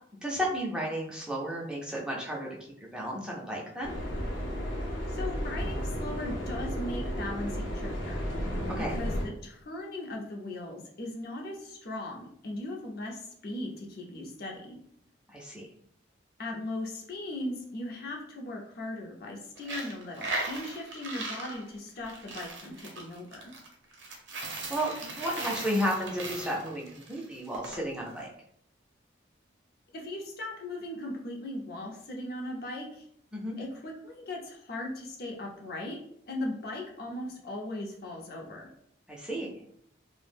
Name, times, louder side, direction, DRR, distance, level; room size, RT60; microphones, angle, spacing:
voice 1, 0.2-2.5 2.9-3.9 8.7-9.0 15.3-15.7 24.4-28.3 33.3-33.6 39.1-39.5, equal, 5° right, -3 dB, 0.4 m, -33 dB
sound 1, 3.8-9.3, equal, 75° left, 0.7 m, -33 dB
voice 2, 5.1-8.3 8.8-14.8 16.4-23.4 29.9-33.1 33.6-36.0 36.3-38.7, left 1 dB, 50° left, 0 dB, 0.5 m, -38 dB
Coin (dropping), 19.6-27.8, right 2 dB, 70° right, 0.5 m, -38 dB
2.3 x 2.0 x 3.2 m, 0.68 s
head